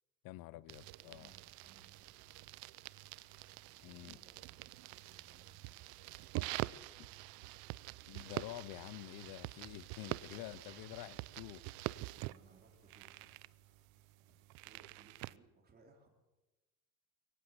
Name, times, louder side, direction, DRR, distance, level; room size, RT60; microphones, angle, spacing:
voice 1, 0.2-1.3 3.8-4.2 8.1-11.6, left 17 dB, 60° left, 0.6 m, -48 dB
sound 1, 0.7-15.4, right 20 dB, 65° right, 0.7 m, -46 dB
voice 2, 1.0-2.5 3.7-7.6 10.3-10.6 12.0-13.4 14.2-14.3 14.6-16.1, right 4 dB, 25° right, 3.7 m, -66 dB
Rain, 1.2-15.0, left 3 dB, 35° left, 5.4 m, -75 dB
23.0 x 17.5 x 8.0 m
cardioid pair, 175°, 39 cm